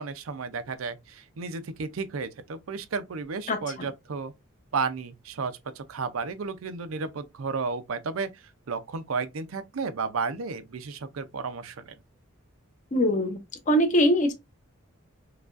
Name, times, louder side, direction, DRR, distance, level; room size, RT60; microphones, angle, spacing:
voice 1, 0.0-4.3 4.7-8.3 8.7-12.0, right 4 dB, 80° right, 0.5 m, -33 dB
voice 2, 12.9-13.4 13.7-14.3, equal, 40° left, 0.8 m, -21 dB
4.8 x 2.3 x 2.4 m
head